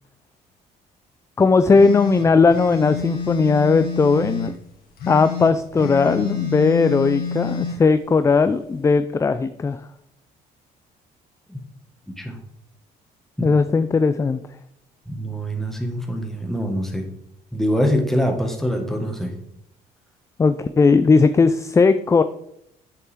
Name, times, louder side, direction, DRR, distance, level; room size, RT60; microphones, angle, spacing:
voice 1, 1.4-4.6 5.1-9.8 13.4-14.4 20.4-22.2, left 4 dB, 15° left, 11 dB, 0.4 m, -17 dB
sound 1, 1.7-4.5 5.0-7.8, left 6 dB, 65° left, 2.2 m, -28 dB
voice 2, 15.1-17.1 17.5-19.3, equal, ahead, 2 dB, 1.7 m, -24 dB
8.0 x 7.1 x 3.7 m, 0.74 s
cardioid pair, 110°, 17 cm